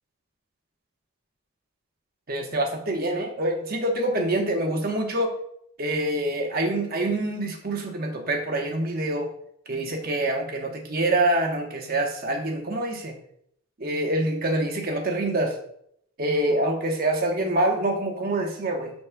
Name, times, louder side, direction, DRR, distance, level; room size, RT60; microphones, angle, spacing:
voice 1, 2.3-5.3 5.8-9.3 9.7-13.2 13.8-15.6 16.2-18.9, right 1 dB, 45° right, 2 dB, 1.1 m, -26 dB
12.5 x 4.2 x 2.2 m, 0.70 s
head